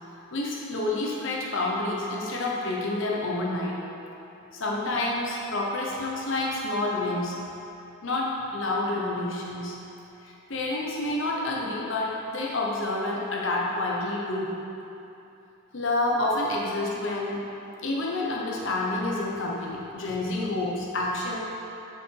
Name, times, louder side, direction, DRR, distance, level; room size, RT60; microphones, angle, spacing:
voice 1, 0.3-3.8 4.5-7.4 8.0-9.8 10.2-14.5 15.7-17.5 17.8-21.4, left 2 dB, 60° left, -3 dB, 1.0 m, -28 dB
7.7 x 6.8 x 4.6 m, 2.9 s
head